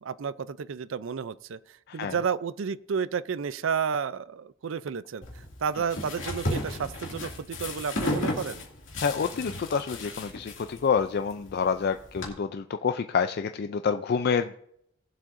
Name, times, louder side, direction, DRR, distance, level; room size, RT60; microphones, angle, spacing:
voice 1, 0.0-1.6 1.9-8.6, right 6 dB, 70° right, 16 dB, 0.4 m, -31 dB
sound 1, 5.2-12.3, left 1 dB, 70° left, 2.4 m, -34 dB
voice 2, 9.0-14.6, left 6 dB, 50° left, 9 dB, 0.4 m, -28 dB
19.5 x 7.5 x 2.6 m, 0.75 s
head